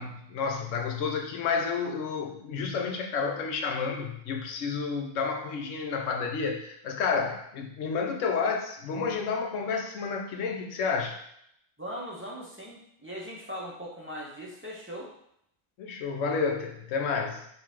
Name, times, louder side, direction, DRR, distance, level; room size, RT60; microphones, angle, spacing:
voice 1, 0.0-11.2 15.8-17.4, left 5 dB, 80° left, 3 dB, 1.0 m, -30 dB
voice 2, 11.8-15.1, equal, 10° right, -6 dB, 0.9 m, -39 dB
4.7 x 2.8 x 3.6 m, 0.72 s
omnidirectional pair, 1.3 m